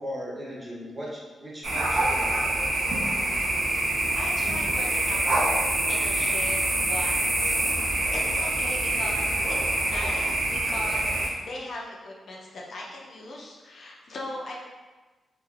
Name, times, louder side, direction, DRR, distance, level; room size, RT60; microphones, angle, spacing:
voice 1, 0.0-2.4, equal, 20° right, -6 dB, 0.6 m, -37 dB
sound 1, 1.6-11.3, right 1 dB, 70° right, 0.6 m, -25 dB
voice 2, 4.1-5.2 5.9-7.8 8.1-14.6, left 2 dB, 50° left, -2 dB, 0.4 m, -39 dB
3.2 x 2.3 x 2.3 m, 1.3 s
wide cardioid pair, 170°, 0 cm